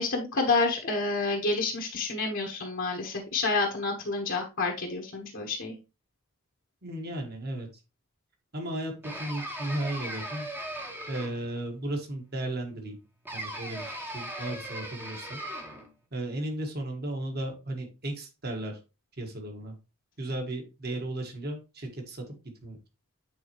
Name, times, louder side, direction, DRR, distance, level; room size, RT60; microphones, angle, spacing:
voice 1, 0.0-5.7, left 3 dB, 60° left, 0 dB, 1.2 m, -29 dB
voice 2, 6.8-7.7 8.5-10.5 11.1-13.0 13.3-15.4 16.1-18.8 19.2-19.8 20.2-22.3 22.6-22.8, right 1 dB, 45° right, 3 dB, 1.6 m, -35 dB
sound 1, 9.0-11.6 13.3-15.9, right 1 dB, 10° right, 0.9 m, -38 dB
8.3 x 4.1 x 3.0 m, 0.28 s
head